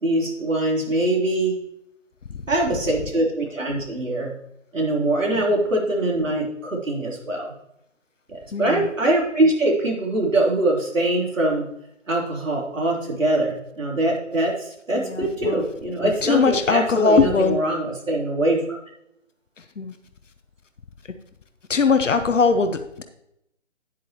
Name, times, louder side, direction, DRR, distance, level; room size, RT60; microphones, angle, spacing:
voice 1, 0.0-1.6 2.5-4.3 4.7-7.5 8.3-11.7 12.1-18.8, right 1 dB, 85° right, -1 dB, 3.6 m, -23 dB
voice 2, 8.5-8.9 14.9-15.6 16.0-17.6 19.6-20.0 21.7-23.0, left 4 dB, 75° left, 8 dB, 0.9 m, -21 dB
10.0 x 8.3 x 2.9 m, 0.80 s
figure-of-eight pair, 175°, 38 cm